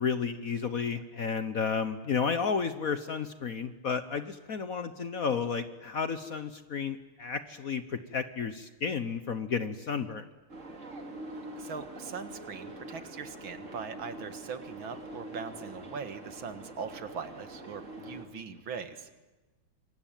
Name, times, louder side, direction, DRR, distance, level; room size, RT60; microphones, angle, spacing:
voice 1, 0.0-10.2, left 6 dB, 50° left, 10 dB, 1.2 m, -32 dB
sound 1, 10.5-18.3, right 1 dB, 35° right, 2.9 m, -44 dB
voice 2, 11.6-19.1, right 6 dB, 70° right, 9 dB, 2.4 m, -41 dB
26.5 x 23.5 x 9.1 m, 1.2 s
omnidirectional pair, 2.3 m